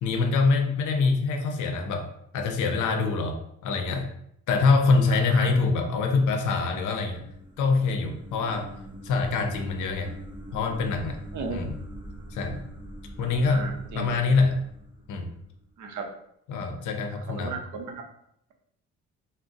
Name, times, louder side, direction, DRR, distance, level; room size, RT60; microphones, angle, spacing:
voice 1, 0.0-2.1 2.3-4.1 4.5-7.2 7.6-8.7 9.0-10.1 10.5-11.2 11.5-11.7 12.3-12.6 13.2-14.6 15.1-15.3 16.5-17.5, left 4 dB, 80° left, 5 dB, 0.6 m, -25 dB
voice 2, 5.1-5.5 11.3-11.6 13.2-14.2 15.8-16.1 17.3-18.0, right 4 dB, 75° right, 2 dB, 0.6 m, -36 dB
sound 1, 6.9-15.8, right 1 dB, 15° right, 0.5 m, -44 dB
2.4 x 2.1 x 3.8 m, 0.74 s
cardioid pair, 90°, 30 cm